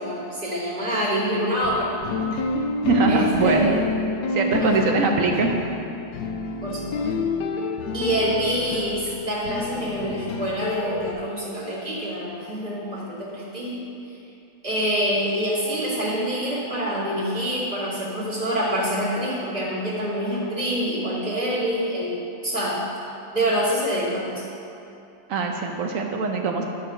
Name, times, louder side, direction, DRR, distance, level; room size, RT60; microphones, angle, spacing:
voice 1, 0.0-1.9 2.3-2.5 3.1-4.1 4.6-4.9 6.6-7.1 7.9-13.8 14.6-22.8 23.3-24.4, equal, 25° right, -8 dB, 2.6 m, -26 dB
sound 1, 1.6-11.1, left 3 dB, 75° left, 1.2 m, -28 dB
voice 2, 2.9-3.7 4.3-5.7 25.3-26.6, right 4 dB, 65° right, 2 dB, 0.8 m, -22 dB
12.0 x 4.2 x 6.4 m, 2.7 s
omnidirectional pair, 2.0 m